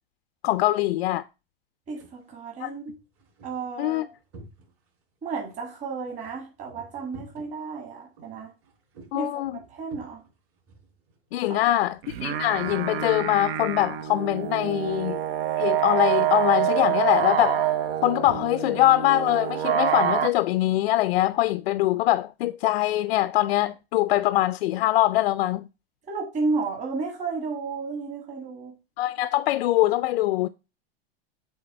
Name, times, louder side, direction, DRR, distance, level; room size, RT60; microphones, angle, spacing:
voice 1, 0.4-1.2 2.6-2.7 3.8-4.1 9.1-9.6 11.3-11.9 12.2-15.2 15.6-17.6 18.0-25.7 29.0-30.5, left 15 dB, 85° left, 0.5 m, -23 dB
sound 1, 1.8-2.2 2.8-5.0 5.3-13.2 13.5-14.6 14.9-15.1 15.5-15.9 16.2-20.5, right 3 dB, 45° right, 3.7 m, -51 dB
voice 2, 1.9-3.0 3.4-4.1 5.2-8.5 9.1-9.4 9.7-10.2 11.4-11.8 26.1-28.8, right 4 dB, 25° right, 1.8 m, -32 dB
sound 2, 12.0-20.3, right 10 dB, 75° right, 0.9 m, -26 dB
8.0 x 3.4 x 4.5 m
supercardioid pair, 145°, 30 cm